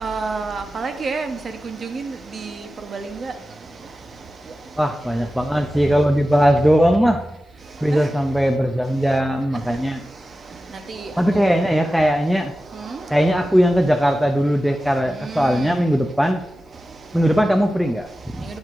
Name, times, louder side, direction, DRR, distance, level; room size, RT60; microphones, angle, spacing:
voice 1, 0.0-1.4 1.6-2.0 2.9-3.3 7.9-8.1 11.3-11.4 15.4-15.6, right 4 dB, 40° right, 7 dB, 0.9 m, -28 dB
voice 2, 4.8-7.2 7.8-10.0 11.2-12.5 13.1-16.4 17.1-18.4, equal, ahead, 4 dB, 0.6 m, -19 dB
7.9 x 7.2 x 2.5 m, 0.88 s
cardioid pair, 95°, 0 cm